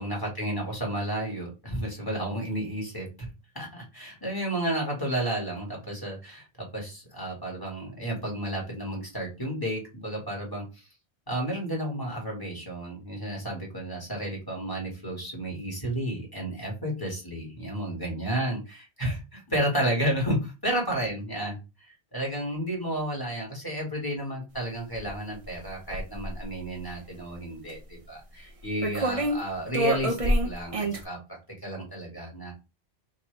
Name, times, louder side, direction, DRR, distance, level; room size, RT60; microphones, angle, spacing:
voice 1, 0.0-3.3 3.5-10.8 11.3-21.6 21.8-30.2 30.4-32.5, right 1 dB, 20° left, -1 dB, 1.8 m, -32 dB
sound 1, 24.9-25.1 25.4-26.5 27.7-27.8 28.8-29.4 29.7-31.0, right 1 dB, 35° right, 0.8 m, -26 dB
5.4 x 2.8 x 3.3 m, 0.28 s
omnidirectional pair, 1.1 m